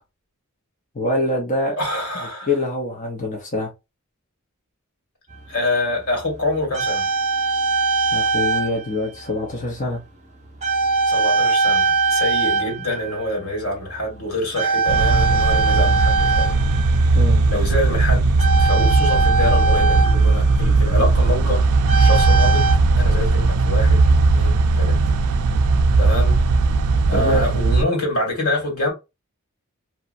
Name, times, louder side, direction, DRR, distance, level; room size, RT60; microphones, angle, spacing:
voice 1, 0.9-1.8 2.5-3.7 8.1-10.0 17.1-17.4 27.1-27.4, left 1 dB, 35° left, 0.7 m, -24 dB
voice 2, 1.8-2.5 5.5-7.1 11.1-16.5 17.1-17.2 17.5-22.7 23.0-24.0 24.3-25.0 26.0-26.4 27.1-28.9, left 1 dB, 90° left, 1.7 m, -26 dB
sound 1, 5.3-5.4 6.3-8.9 9.2-9.4 10.6-13.4 13.7-14.0 14.5-17.2 18.4-20.8 21.9-22.8, right 4 dB, 30° right, 0.7 m, -21 dB
sound 2, 14.9-27.8, right 3 dB, 85° right, 0.4 m, -17 dB
2.9 x 2.2 x 2.5 m
head